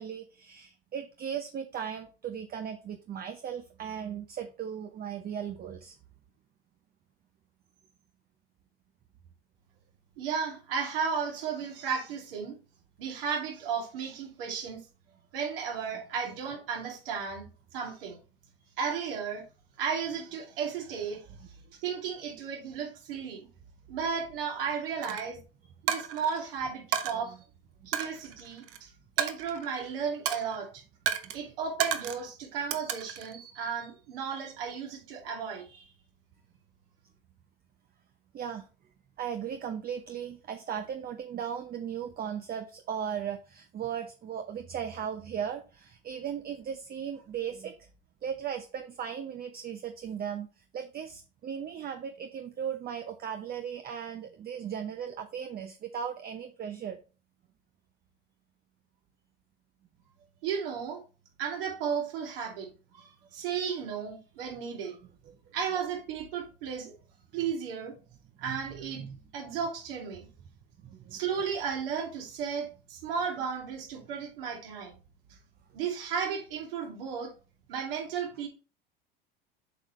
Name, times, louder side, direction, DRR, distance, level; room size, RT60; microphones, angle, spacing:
voice 1, 0.0-6.0 16.3-16.4 25.1-25.2 27.2-27.4 27.8-27.9 31.2-31.3 38.3-38.7 39.2-47.9 48.2-57.0 65.3-65.4 68.4-68.6 69.0-69.2 70.8-71.2, right 8 dB, 30° right, 0.8 m, -37 dB
voice 2, 10.2-12.6 13.0-14.8 15.3-17.4 17.7-18.2 18.8-19.4 19.8-21.3 21.8-23.5 23.9-25.4 25.8-27.4 27.9-28.9 29.2-30.8 31.3-35.9 60.4-61.0 61.4-62.7 63.0-65.0 65.5-66.9 67.3-67.9 68.4-69.0 69.3-70.3 71.1-75.0 75.7-77.3 77.7-78.5, right 6 dB, 75° right, 2.7 m, -34 dB
Coin (dropping), 25.0-25.2 25.9-26.4 26.9-27.1 27.9-28.8 29.2-29.8 30.3-30.6 31.1-31.4 31.8-32.3 32.7-33.3, right 9 dB, 50° right, 1.1 m, -32 dB
7.9 x 5.0 x 3.1 m
hypercardioid pair, 80°, 29 cm